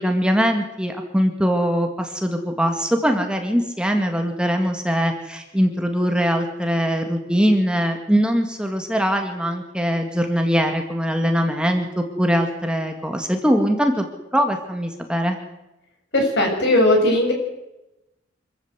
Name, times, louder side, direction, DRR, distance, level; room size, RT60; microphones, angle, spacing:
voice 1, 0.0-14.1 14.3-15.4, equal, 5° right, 4 dB, 2.0 m, -21 dB
voice 2, 16.1-17.3, left 1 dB, 60° left, 1 dB, 7.7 m, -18 dB
26.0 x 14.0 x 8.1 m, 0.94 s
head